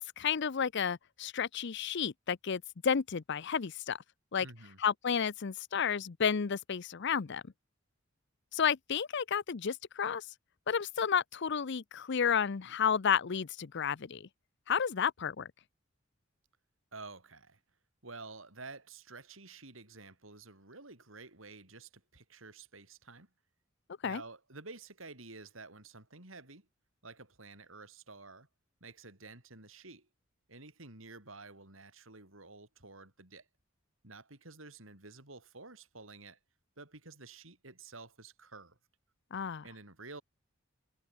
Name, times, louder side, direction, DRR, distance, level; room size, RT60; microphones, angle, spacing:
voice 1, 0.0-4.0 4.3-4.5 4.8-7.4 8.5-10.3 10.7-14.3 14.7-15.5 24.0-24.2 39.3-39.6, left 7 dB, 60° left, 0.6 m, -31 dB
voice 2, 4.4-4.8 16.9-17.6 18.0-23.3 24.0-26.7 27.0-28.5 28.8-30.1 30.5-33.5 34.0-36.4 36.8-38.8 39.6-40.2, right 3 dB, 75° right, 5.2 m, -50 dB
head